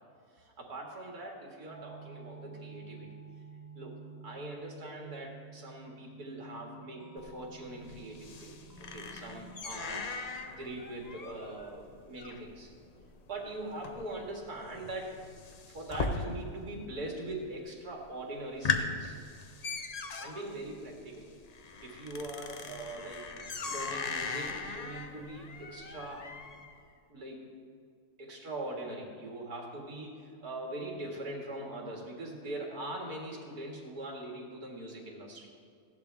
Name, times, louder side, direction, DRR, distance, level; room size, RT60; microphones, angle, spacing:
voice 1, 0.4-3.1 3.8-4.0 4.2-8.6 8.9-10.1 10.4-12.7 13.3-15.2 15.7-19.2 20.2-21.3 21.8-26.3 27.1-27.4 28.2-35.5, right 1 dB, 90° right, -1 dB, 2.5 m, -42 dB
sound 1, 1.7-9.6, right 5 dB, 35° right, 0.3 m, -51 dB
sound 2, 7.2-16.7 17.0-17.6 18.0-18.1 18.4-26.7, left 4 dB, 50° left, 0.4 m, -39 dB
16.5 x 11.0 x 3.4 m, 2.2 s
omnidirectional pair, 1.6 m